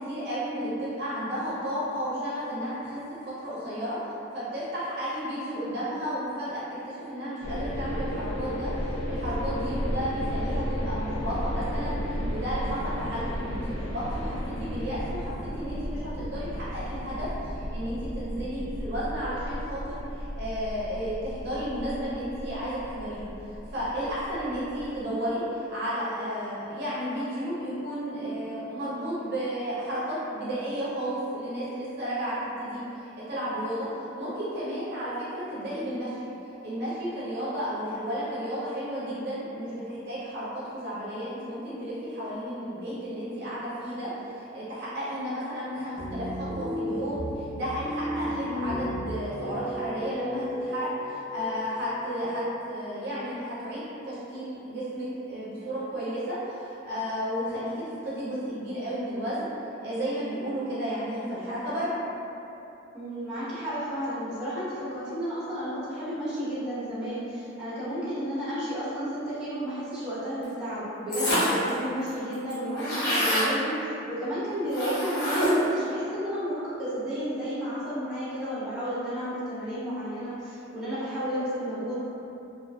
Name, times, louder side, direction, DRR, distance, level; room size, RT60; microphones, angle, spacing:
voice 1, 0.0-3.0 3.3-4.0 4.3-23.3 23.7-36.2 36.6-57.7 58.0-59.5 59.8-61.9, equal, 55° right, -9 dB, 0.5 m, -33 dB
sound 1, 7.4-25.0, equal, 80° left, 0.3 m, -34 dB
sound 2, 46.0-53.5, equal, 30° right, 0.9 m, -35 dB
voice 2, 62.9-81.9, equal, 5° right, -14 dB, 1.0 m, -32 dB
sound 3, 71.1-71.7 72.1-72.2 72.3-73.5 74.7-75.7, equal, 55° left, 0.7 m, -26 dB
2.4 x 2.3 x 2.3 m, 2.9 s
head